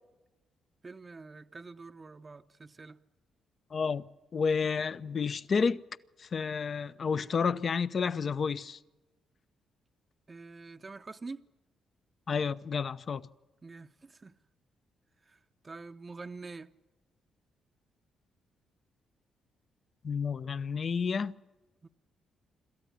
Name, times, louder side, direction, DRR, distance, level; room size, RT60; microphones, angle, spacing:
voice 1, 0.8-3.0 10.3-11.4 13.6-14.3 15.2-16.7 21.8-21.9, right 3 dB, 35° right, 0.8 m, -46 dB
voice 2, 3.7-4.0 4.3-5.8 6.2-8.8 12.3-13.2 20.0-21.4, left 5 dB, 50° left, 0.8 m, -30 dB
26.5 x 13.5 x 9.8 m
supercardioid pair, 60°, 0 cm